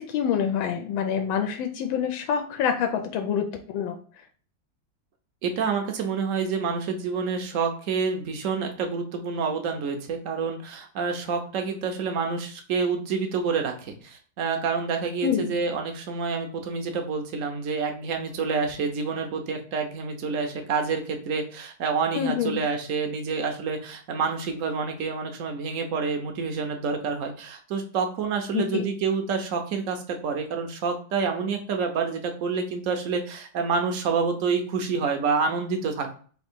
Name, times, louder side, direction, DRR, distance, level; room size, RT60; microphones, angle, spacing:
voice 1, 0.0-4.0 15.2-15.5 22.1-22.6 28.5-28.9, left 8 dB, 85° left, 5 dB, 1.4 m, -26 dB
voice 2, 5.4-36.1, right 5 dB, 60° right, 4 dB, 0.9 m, -28 dB
3.5 x 2.8 x 4.4 m, 0.43 s
omnidirectional pair, 2.1 m